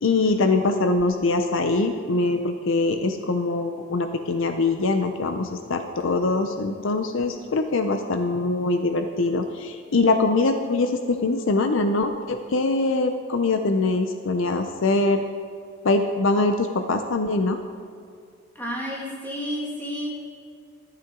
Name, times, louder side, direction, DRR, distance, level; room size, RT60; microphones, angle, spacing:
voice 1, 0.0-15.2 15.8-17.6, left 3 dB, 65° left, 7 dB, 0.6 m, -23 dB
voice 2, 18.6-20.2, equal, 10° left, -3 dB, 1.9 m, -31 dB
14.0 x 9.0 x 3.7 m, 2.3 s
head